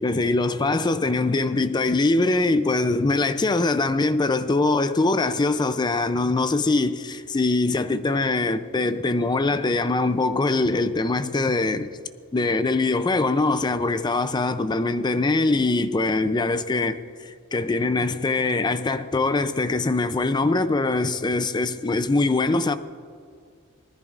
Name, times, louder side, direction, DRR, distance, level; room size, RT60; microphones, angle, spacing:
voice 1, 0.0-11.9 12.3-22.8, left 3 dB, 20° left, 0.4 m, -23 dB
19.5 x 14.0 x 2.5 m
head